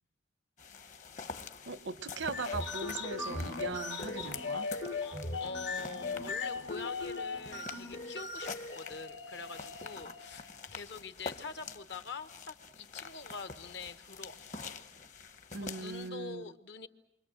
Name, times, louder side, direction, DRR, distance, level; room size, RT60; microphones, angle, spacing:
sound 1, 0.6-16.1, left 5 dB, 40° left, 1.0 m, -47 dB
voice 1, 1.7-4.7 15.5-16.5, right 3 dB, 90° right, 13 dB, 1.0 m, -39 dB
sound 2, 2.2-10.5, left 3 dB, 85° left, 3.0 m, -39 dB
voice 2, 4.9-14.7 15.6-16.9, left 4 dB, 70° left, 10 dB, 1.2 m, -45 dB
28.5 x 25.0 x 7.6 m, 0.79 s
head